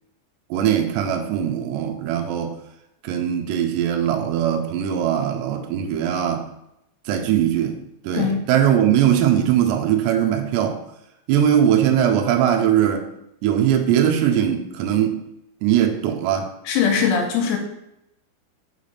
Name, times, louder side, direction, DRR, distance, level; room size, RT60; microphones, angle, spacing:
voice 1, 0.5-2.6 3.0-6.5 7.1-7.8 8.0-10.8 11.3-13.1 13.4-15.2 15.6-16.5, right 10 dB, 80° right, 4 dB, 2.7 m, -20 dB
voice 2, 16.7-17.6, left 7 dB, 80° left, 2 dB, 2.7 m, -20 dB
5.7 x 4.9 x 4.0 m, 0.83 s
omnidirectional pair, 5.1 m